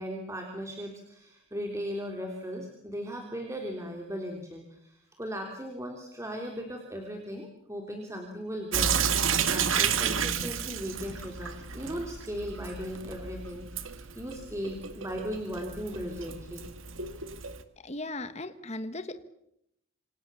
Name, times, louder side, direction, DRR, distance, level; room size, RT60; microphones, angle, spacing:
voice 1, 0.0-9.0 9.4-13.6 13.9-16.6, equal, 15° right, 2 dB, 3.3 m, -37 dB
Sink (filling or washing) / Drip, 8.7-17.6, right 7 dB, 85° right, 2.0 m, -31 dB
voice 2, 17.8-19.2, left 2 dB, 35° left, 10 dB, 1.5 m, -37 dB
27.5 x 26.5 x 7.1 m, 0.78 s
head